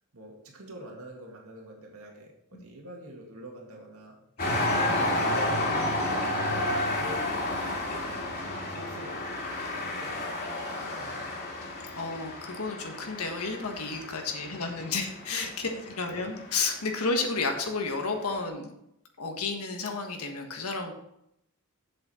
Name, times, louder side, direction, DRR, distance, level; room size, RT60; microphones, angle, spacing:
voice 1, 0.1-4.2 4.7-7.3 7.8-8.1 8.7-9.3 9.8-11.3 11.7-11.8 13.8-14.8 15.3-15.8, right 1 dB, 70° right, 0 dB, 2.2 m, -45 dB
voice 2, 4.4-4.9 11.9-18.7 19.2-20.9, left 4 dB, 90° left, 3 dB, 1.5 m, -32 dB
sound 1, 4.4-17.2 17.9-18.0, left 1 dB, 45° left, 2.5 m, -31 dB
7.9 x 7.6 x 4.4 m, 0.78 s
head